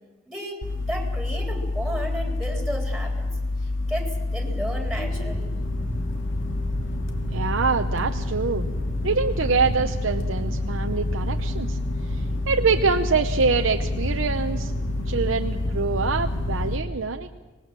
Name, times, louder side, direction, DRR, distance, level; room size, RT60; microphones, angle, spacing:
voice 1, 0.3-3.3 3.6-5.5, right 1 dB, ahead, 2 dB, 3.2 m, -33 dB
sound 1, 0.6-16.8, left 1 dB, 70° left, 2.4 m, -27 dB
voice 2, 7.3-8.7 9.0-11.8 12.1-14.7 15.1-17.3, right 4 dB, 85° right, 5 dB, 0.9 m, -25 dB
25.0 x 19.0 x 7.5 m, 1.2 s
head